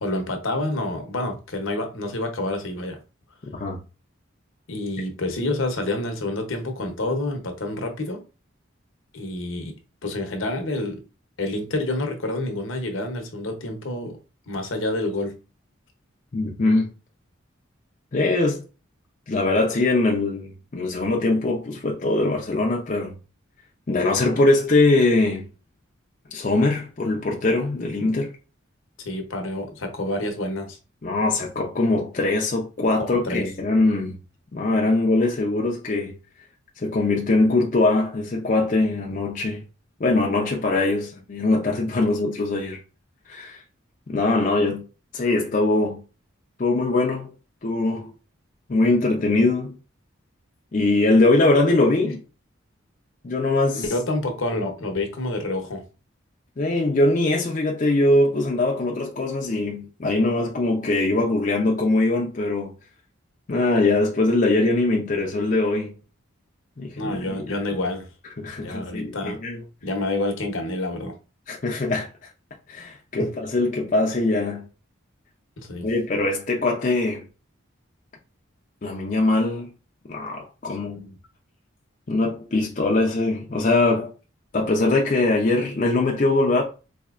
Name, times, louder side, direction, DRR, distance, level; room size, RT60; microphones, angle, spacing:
voice 1, 0.0-3.0 4.7-8.2 9.1-9.8 10.0-11.0 11.4-14.2 14.5-15.4 29.0-30.8 33.0-33.5 53.7-55.8 67.0-68.1 68.6-69.4 69.8-71.1 73.2-73.3 75.6-75.9 80.9-81.2, left 2 dB, 70° left, 0.8 m, -28 dB
voice 2, 16.3-16.9 18.1-18.6 19.3-23.1 23.9-25.5 26.3-28.3 31.0-34.2 34.5-36.1 36.8-39.6 40.0-42.8 43.3-43.6 44.1-44.8 45.1-46.0 46.6-47.3 47.6-48.1 48.7-49.8 50.7-52.2 53.2-53.8 56.6-62.7 63.5-65.9 66.8-67.4 68.4-69.6 71.5-72.1 72.7-74.7 75.8-77.2 78.8-79.7 80.1-81.1 82.1-84.1 84.5-86.6, left 2 dB, 40° left, 0.4 m, -22 dB
4.2 x 2.7 x 2.4 m
head